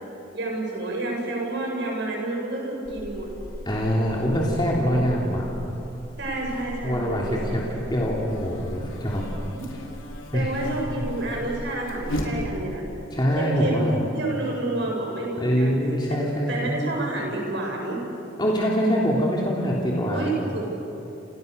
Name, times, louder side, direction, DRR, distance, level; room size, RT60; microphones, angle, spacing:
voice 1, 0.3-3.3 4.3-5.0 6.2-7.6 9.5-9.6 10.3-12.8 13.4-15.7 16.1-18.0 20.1-20.7, right 2 dB, 60° right, -1 dB, 7.8 m, -29 dB
Buzz, 2.8-12.8, equal, 90° left, 4.3 m, -36 dB
voice 2, 3.6-5.4 6.8-9.2 10.3-10.5 13.1-14.0 15.4-16.8 18.4-20.4, equal, 20° left, -3 dB, 3.1 m, -24 dB
29.5 x 29.5 x 6.8 m, 3.0 s
head